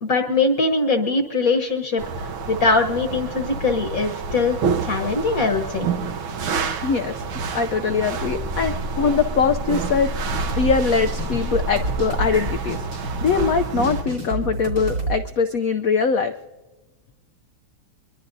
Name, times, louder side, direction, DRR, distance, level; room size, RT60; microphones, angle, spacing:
voice 1, 0.0-5.9, left 3 dB, 50° left, 5 dB, 1.3 m, -22 dB
sound 1, 2.0-14.0, right 5 dB, 90° right, 1.9 m, -29 dB
voice 2, 6.8-7.2 7.5-10.1 10.5-12.8 13.2-16.3, left 5 dB, 75° left, 8 dB, 0.8 m, -22 dB
sound 2, 8.1-13.0, equal, 35° right, 1.7 m, -31 dB
sound 3, 10.3-15.2, right 2 dB, 60° right, 4.1 m, -29 dB
23.5 x 23.0 x 2.7 m, 1.1 s
omnidirectional pair, 2.2 m